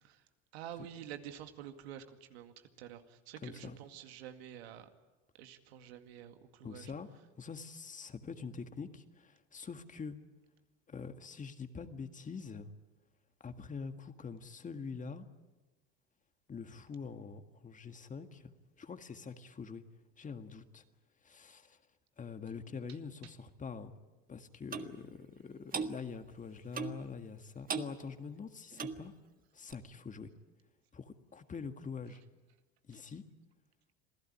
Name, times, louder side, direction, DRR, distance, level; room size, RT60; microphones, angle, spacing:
voice 1, 0.5-4.9 5.4-6.9, right 10 dB, 85° right, 7 dB, 2.2 m, -48 dB
voice 2, 3.4-3.8 6.6-7.1 7.4-10.2 10.9-12.7 13.4-15.3 16.5-18.5 18.8-19.8 20.2-20.8 21.2-21.8 22.2-23.9 24.3-29.1 29.5-30.3 30.9-32.2 32.9-33.2, left 5 dB, 25° left, 8 dB, 1.8 m, -45 dB
Clock, 24.7-24.9 25.7-25.9 26.7-27.0 27.7-27.9 28.7-29.0 29.7-29.8, right 5 dB, 30° right, 1.6 m, -37 dB
27.0 x 16.5 x 10.0 m, 1.2 s
supercardioid pair, 100°, 31 cm